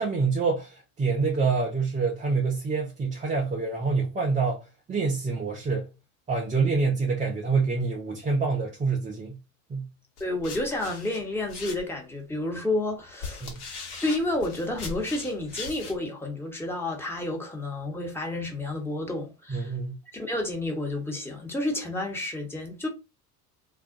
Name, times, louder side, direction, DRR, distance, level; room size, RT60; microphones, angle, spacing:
voice 1, 0.0-4.6 4.9-5.9 6.3-9.4 9.7-9.9 13.4-13.6 19.5-20.0, right 4 dB, 15° right, 0.5 m, -26 dB
sound 1, 10.2-12.2 12.9-16.0, left 4 dB, 55° left, 1.1 m, -39 dB
voice 2, 10.2-13.5 14.0-19.7 20.1-22.9, left 2 dB, 5° left, 0.9 m, -30 dB
2.4 x 2.1 x 2.5 m
hypercardioid pair, 75°, 46 cm